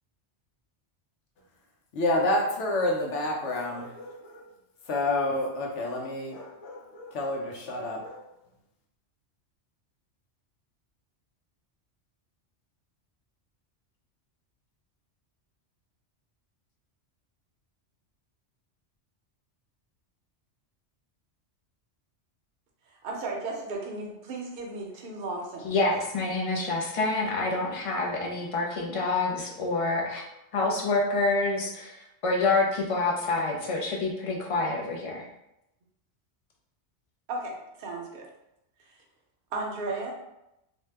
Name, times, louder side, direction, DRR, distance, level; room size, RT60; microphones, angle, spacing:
voice 1, 1.9-4.5 4.9-8.2, left 2 dB, 85° left, -1 dB, 1.0 m, -29 dB
voice 2, 22.9-25.7 37.3-38.3 38.8-39.0 39.5-40.1, right 2 dB, 55° right, 0 dB, 0.7 m, -35 dB
voice 3, 25.6-30.2 30.5-32.0 32.2-35.3, left 3 dB, 55° left, -2 dB, 0.3 m, -27 dB
2.7 x 2.2 x 3.2 m, 0.86 s
omnidirectional pair, 1.2 m